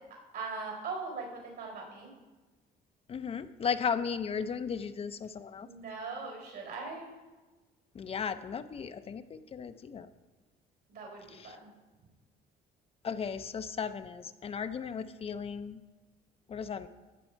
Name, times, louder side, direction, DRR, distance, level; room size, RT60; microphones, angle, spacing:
voice 1, 0.1-2.1 5.5-7.1 10.9-11.7, right 4 dB, 70° right, 1 dB, 4.1 m, -41 dB
voice 2, 3.1-5.7 7.9-10.1 13.0-15.8 16.5-16.9, left 6 dB, 35° left, 10 dB, 0.5 m, -35 dB
15.5 x 6.9 x 4.5 m, 1.2 s
cardioid pair, 110°, 17 cm